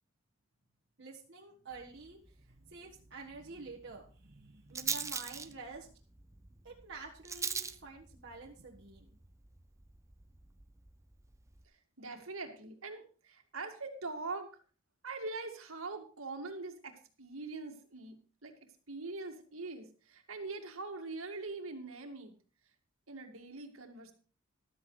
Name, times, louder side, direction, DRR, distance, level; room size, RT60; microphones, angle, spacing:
voice 1, 1.0-6.0 6.6-9.1, right 3 dB, 55° right, -2 dB, 1.6 m, -49 dB
Rattle, 1.7-11.6, right 5 dB, 15° right, 0.7 m, -44 dB
voice 2, 11.6-14.5 15.0-22.3 23.1-24.1, right 3 dB, 75° right, 5 dB, 2.2 m, -43 dB
14.5 x 12.5 x 3.3 m, 0.39 s
head